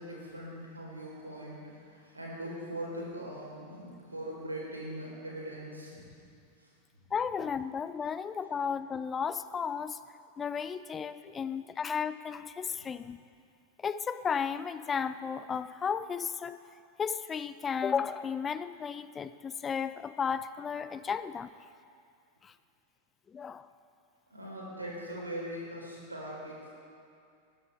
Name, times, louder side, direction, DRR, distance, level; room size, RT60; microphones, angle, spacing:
voice 1, 0.0-1.6 1.9-6.1 24.3-26.7, right 1 dB, 85° right, -4 dB, 4.1 m, -41 dB
voice 2, 7.1-10.0 10.4-13.2 13.8-16.6 17.0-21.5 22.4-22.5 23.3-23.7, left 6 dB, 20° left, 14 dB, 0.4 m, -34 dB
20.5 x 13.0 x 3.5 m, 2.4 s
figure-of-eight pair, 90°, 0 cm